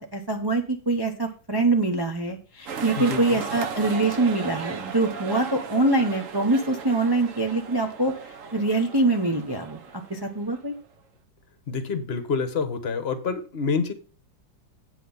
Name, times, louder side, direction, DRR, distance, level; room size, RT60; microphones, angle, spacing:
voice 1, 0.0-8.1 8.5-10.7, right 2 dB, 25° right, 3 dB, 0.5 m, -24 dB
sound 1, 2.7-10.8, right 6 dB, 50° right, 1.1 m, -36 dB
voice 2, 3.0-3.4 11.7-13.9, left 5 dB, 40° left, 10 dB, 1.1 m, -27 dB
8.4 x 5.8 x 5.6 m, 0.36 s
omnidirectional pair, 2.0 m